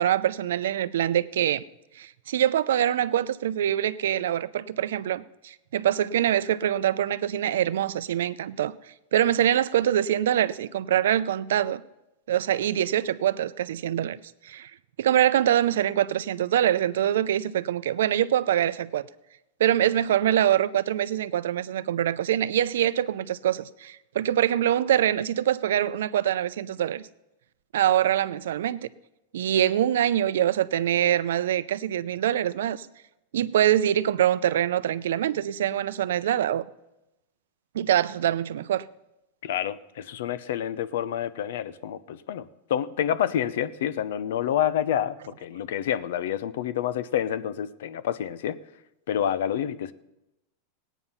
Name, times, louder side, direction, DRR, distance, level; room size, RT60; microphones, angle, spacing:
voice 1, 0.0-1.6 2.0-8.7 9.1-11.8 12.3-14.2 14.4-14.7 15.0-19.0 19.6-27.0 27.7-28.9 29.3-32.9 33.3-36.6 37.7-38.9, right 11 dB, 85° right, 0.5 m, -24 dB
voice 2, 39.4-48.6 49.1-49.9, left 10 dB, 70° left, 0.7 m, -28 dB
18.0 x 9.2 x 5.6 m
supercardioid pair, 175°, 0 cm